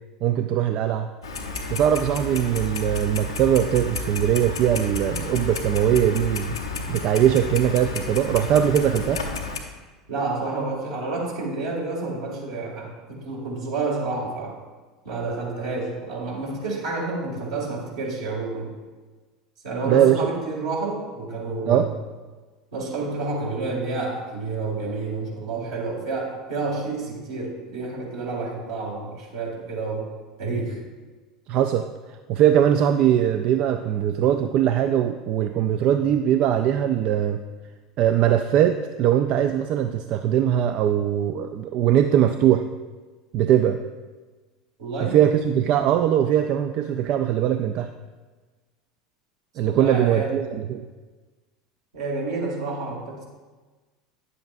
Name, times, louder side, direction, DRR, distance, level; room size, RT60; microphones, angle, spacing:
voice 1, 0.2-1.1 1.7-6.6 6.9-9.2 19.9-20.2 21.7-21.9 31.5-31.9 32.3-37.4 38.0-42.6 43.3-43.8 45.0-47.9 49.6-50.9, right 10 dB, 50° right, 8 dB, 0.3 m, -21 dB
Clock, 1.2-9.6, left 3 dB, 90° left, 0.7 m, -32 dB
voice 2, 10.1-14.6 15.0-18.7 19.6-21.9 22.7-30.1 30.4-30.8 44.8-45.2 49.6-50.4 51.9-53.2, right 3 dB, 70° right, -3 dB, 2.2 m, -29 dB
9.5 x 7.6 x 2.5 m, 1.3 s
hypercardioid pair, 80°, 3 cm